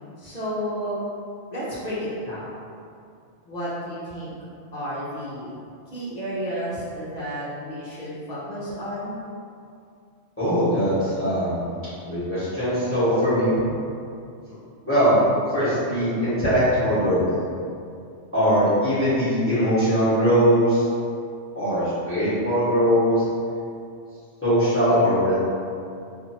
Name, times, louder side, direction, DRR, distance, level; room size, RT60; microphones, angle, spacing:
voice 1, 0.2-1.0 1.5-2.5 3.4-4.3 4.7-5.5 5.9-9.2, equal, 45° left, -9 dB, 0.7 m, -31 dB
voice 2, 10.4-11.7 12.0-13.5 14.8-15.2 15.5-17.2 18.3-20.8 21.5-23.1 24.4-25.3, equal, 10° left, -16 dB, 1.1 m, -21 dB
2.7 x 2.5 x 2.7 m, 2.4 s
omnidirectional pair, 1.2 m